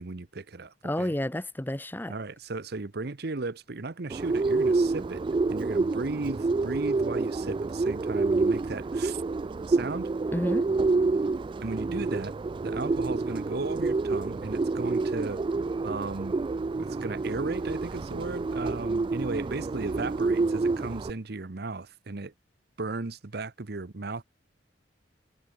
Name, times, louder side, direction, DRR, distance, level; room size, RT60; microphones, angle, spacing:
voice 1, 0.0-1.1 2.1-5.2 5.5-9.2 9.7-10.1 11.6-12.3 12.6-15.4 15.8-16.4 16.8-22.3 22.8-24.2, right 3 dB, 60° right, 0.9 m, -35 dB
voice 2, 0.8-2.1 10.3-10.7, left 1 dB, 10° left, 0.8 m, -30 dB
Bird, 4.1-21.1, right 3 dB, 25° right, 0.3 m, -28 dB
head